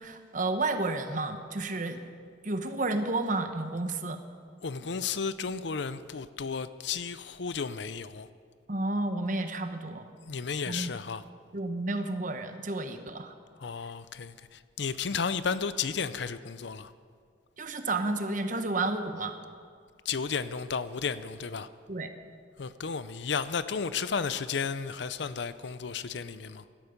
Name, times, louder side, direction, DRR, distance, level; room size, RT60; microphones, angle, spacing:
voice 1, 0.0-2.0 2.4-4.2 8.7-10.1 10.7-10.9 11.5-13.3 17.6-19.4 21.9-22.1, right 2 dB, 45° right, 7 dB, 1.1 m, -31 dB
voice 2, 4.6-8.3 10.3-11.2 13.6-16.9 20.1-21.7 22.6-26.6, left 5 dB, 65° left, 14 dB, 0.6 m, -33 dB
17.5 x 12.5 x 5.2 m, 2.2 s
head